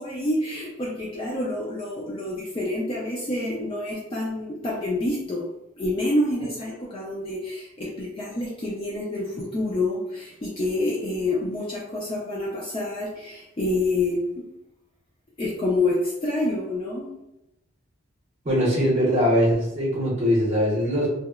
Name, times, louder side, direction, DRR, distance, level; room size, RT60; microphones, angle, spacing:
voice 1, 0.0-5.5 5.8-14.4 15.4-17.1, left 2 dB, 25° left, -4 dB, 0.3 m, -27 dB
voice 2, 18.4-21.1, equal, 30° right, -5 dB, 0.6 m, -21 dB
2.8 x 2.0 x 2.3 m, 0.88 s
head